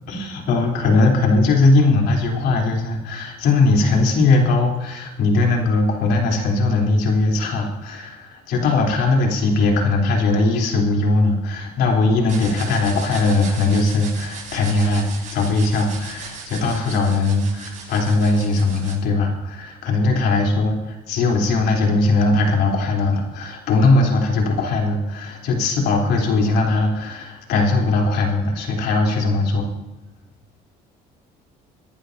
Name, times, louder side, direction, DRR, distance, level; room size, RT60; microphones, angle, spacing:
voice 1, 0.1-29.7, left 3 dB, 80° left, 0 dB, 3.7 m, -19 dB
sound 1, 12.3-18.9, right 5 dB, 45° right, 5.7 m, -37 dB
24.0 x 12.0 x 2.8 m, 1.0 s
cardioid pair, 110°, 17 cm